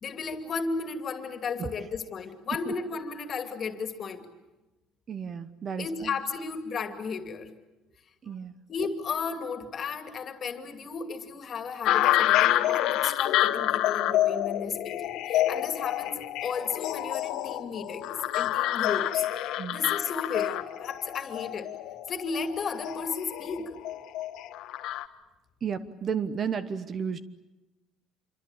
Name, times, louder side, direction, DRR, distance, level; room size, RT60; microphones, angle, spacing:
voice 1, 0.0-4.3 5.8-7.5 8.7-19.3 19.7-21.7 22.1-23.8, left 5 dB, 35° left, 7 dB, 2.6 m, -34 dB
voice 2, 5.1-6.1 8.2-8.6 19.6-19.8 25.6-27.2, right 7 dB, 30° right, 12 dB, 1.1 m, -33 dB
sound 1, 11.9-25.1, left 14 dB, 65° left, 1.3 m, -28 dB
27.0 x 25.0 x 8.9 m, 1.0 s
cardioid pair, 155°, 0 cm